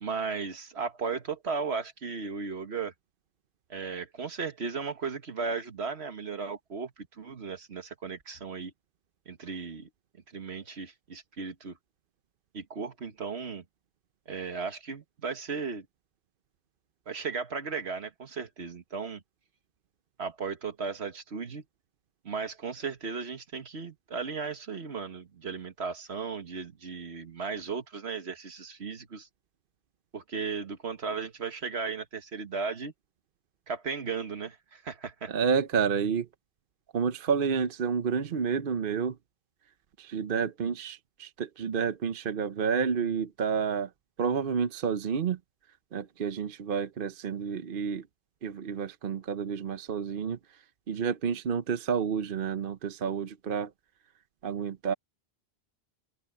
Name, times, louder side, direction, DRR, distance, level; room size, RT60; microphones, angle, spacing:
voice 1, 0.0-2.9 3.7-8.7 9.3-9.9 10.3-11.8 12.5-13.6 14.3-15.9 17.1-19.2 20.2-21.6 22.2-29.3 30.1-32.9 33.7-35.3, right 5 dB, 70° right, 1.7 m, -36 dB
voice 2, 35.3-36.3 36.9-39.2 40.0-43.9 44.2-45.4 45.9-48.0 48.4-50.4 50.9-53.7 54.4-54.9, right 6 dB, 55° right, 0.9 m, -30 dB
open air
omnidirectional pair, 1.1 m